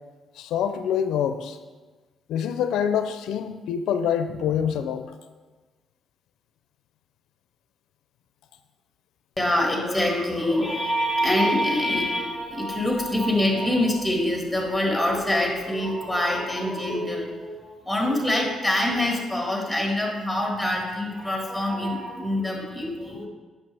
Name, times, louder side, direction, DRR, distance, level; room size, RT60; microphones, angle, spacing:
voice 1, 0.4-1.6 2.3-5.1, left 8 dB, 85° left, 9 dB, 0.4 m, -26 dB
voice 2, 9.4-23.3, left 1 dB, 5° right, 0 dB, 1.8 m, -25 dB
8.6 x 6.0 x 3.4 m, 1.3 s
cardioid pair, 90°, 0 cm